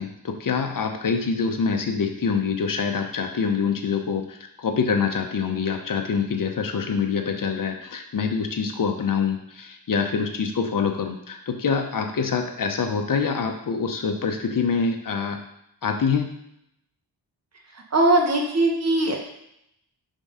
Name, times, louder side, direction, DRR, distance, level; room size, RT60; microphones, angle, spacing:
voice 1, 0.0-4.2 4.6-15.4 15.8-16.3, left 5 dB, 55° left, 4 dB, 0.8 m, -25 dB
voice 2, 17.9-19.1, right 2 dB, 40° right, 1 dB, 1.1 m, -20 dB
5.3 x 3.7 x 5.4 m, 0.76 s
wide cardioid pair, 150°, 41 cm